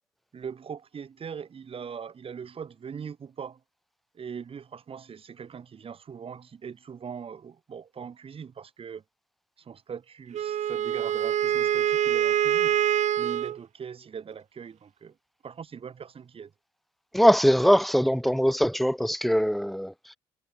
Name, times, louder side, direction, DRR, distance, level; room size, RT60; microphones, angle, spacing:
voice 1, 0.3-3.6 4.1-9.0 9.6-12.8 13.2-15.2 15.4-16.5, right 7 dB, 45° right, 3.7 m, -41 dB
Wind instrument woodwind instrument, 10.3-13.6, right 10 dB, 60° right, 1.8 m, -25 dB
voice 2, 17.1-19.9, equal, ahead, 1.4 m, -21 dB
supercardioid pair, 75°, 13 cm